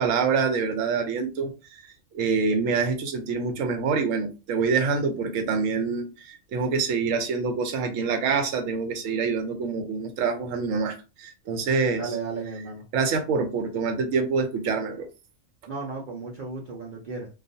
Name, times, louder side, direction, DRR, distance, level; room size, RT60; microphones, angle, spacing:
voice 1, 0.0-1.8 2.1-12.1 12.9-15.1, right 5 dB, 80° right, 1.0 m, -26 dB
voice 2, 12.0-12.8 15.7-17.3, right 4 dB, 55° right, 0.5 m, -34 dB
2.3 x 2.3 x 2.6 m
omnidirectional pair, 1.3 m